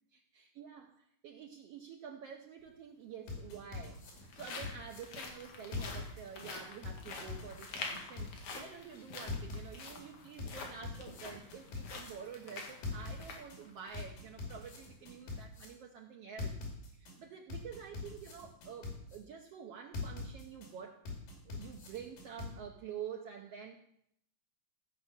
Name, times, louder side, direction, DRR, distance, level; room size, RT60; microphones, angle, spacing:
voice 1, 0.1-1.0 1.2-16.6 16.9-21.0 21.4-23.8, right 7 dB, 90° right, 3 dB, 1.3 m, -48 dB
sound 1, 2.6-2.7 3.6-14.2 14.6-14.7 15.2-15.4, left 4 dB, 65° left, 3.2 m, -47 dB
sound 2, 3.3-5.0 5.7-6.5 6.8-8.5 9.3-10.0 10.4-12.1 12.8-13.6 13.9-15.7 16.4-17.1 17.5-19.2 19.9-20.7 21.1-22.5, left 3 dB, 90° left, 4.5 m, -42 dB
15.5 x 5.3 x 7.4 m, 0.74 s
omnidirectional pair, 3.9 m